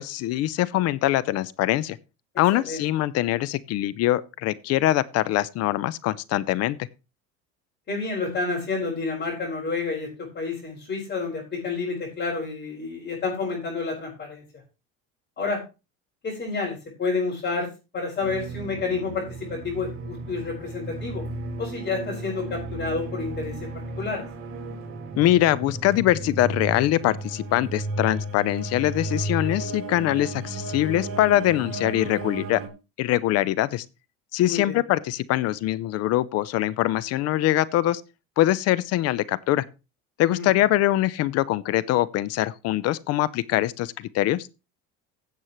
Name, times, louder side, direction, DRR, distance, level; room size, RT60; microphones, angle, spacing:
voice 1, 0.0-2.0 2.4-6.8 25.2-32.6 33.0-33.8 34.3-38.0 38.4-39.6 40.2-44.5, left 14 dB, 55° left, 0.7 m, -23 dB
voice 2, 2.5-2.8 7.9-14.4 15.4-15.6 16.2-21.2 21.6-23.7 24.0-24.2 34.4-34.8 40.3-40.5, left 4 dB, 35° left, 5.7 m, -29 dB
sound 1, 18.2-32.7, right 2 dB, 45° right, 2.6 m, -34 dB
16.0 x 7.4 x 3.1 m
supercardioid pair, 115°, 29 cm